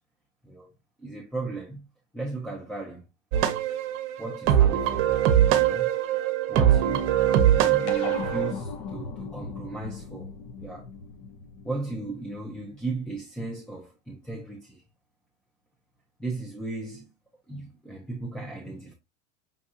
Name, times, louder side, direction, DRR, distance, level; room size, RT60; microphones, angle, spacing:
voice 1, 1.0-1.9 2.1-3.0 4.2-5.1 5.6-5.9 6.5-7.1 7.5-10.3 10.6-10.9 11.6-14.8 16.2-17.1 17.5-18.9, right 2 dB, ahead, 0.4 m, -36 dB
sound 1, 3.3-8.5, right 11 dB, 55° right, 0.8 m, -22 dB
sound 2, 7.9-12.6, left 5 dB, 55° left, 0.8 m, -38 dB
5.5 x 2.6 x 2.3 m
supercardioid pair, 120°, 38 cm